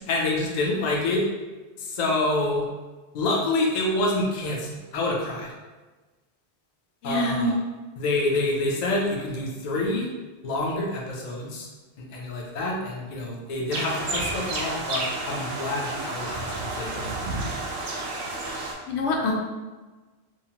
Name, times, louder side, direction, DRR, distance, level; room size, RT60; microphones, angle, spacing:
voice 1, 0.1-1.2 1.8-2.7 3.1-5.5 7.0-7.5 8.0-10.1 10.4-11.7 12.1-17.2, left 2 dB, 50° left, -2 dB, 0.5 m, -27 dB
voice 2, 7.0-7.5 18.9-19.3, left 2 dB, 85° left, -1 dB, 0.9 m, -25 dB
sound 1, 13.7-18.7, right 2 dB, 85° right, 0.9 m, -31 dB
2.8 x 2.1 x 2.8 m, 1.2 s
omnidirectional pair, 1.1 m